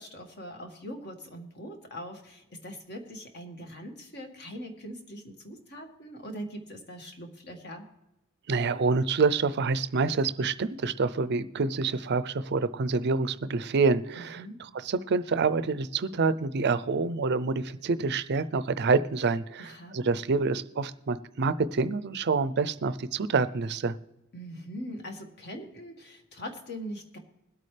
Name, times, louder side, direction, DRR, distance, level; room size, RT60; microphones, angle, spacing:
voice 1, 0.0-7.8 14.4-14.6 19.6-20.0 24.3-27.2, equal, 50° left, 3 dB, 1.9 m, -41 dB
voice 2, 8.5-24.0, right 4 dB, 50° right, 14 dB, 0.5 m, -27 dB
21.5 x 8.5 x 3.3 m, 0.90 s
head